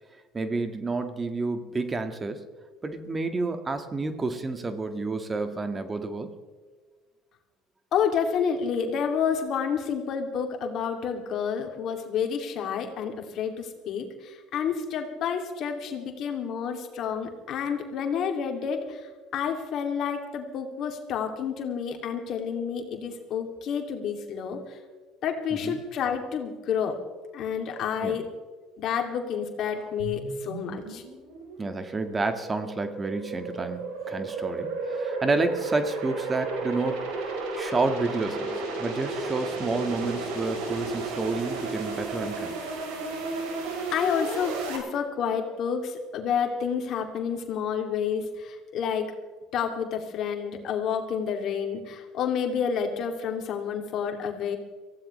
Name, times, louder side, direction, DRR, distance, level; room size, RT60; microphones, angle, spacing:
voice 1, 0.3-2.5 2.8-6.4 25.5-25.8 28.0-28.2 31.6-42.5, right 3 dB, 25° right, 8 dB, 1.7 m, -30 dB
voice 2, 7.9-24.8 25.2-27.0 27.3-28.2 28.8-31.0 43.9-49.1 49.5-54.6, left 7 dB, 60° left, 4 dB, 2.7 m, -29 dB
sound 1, 30.0-44.8, right 3 dB, 85° right, 3.9 m, -33 dB
24.0 x 16.5 x 3.3 m, 1.4 s
supercardioid pair, 75°, 0 cm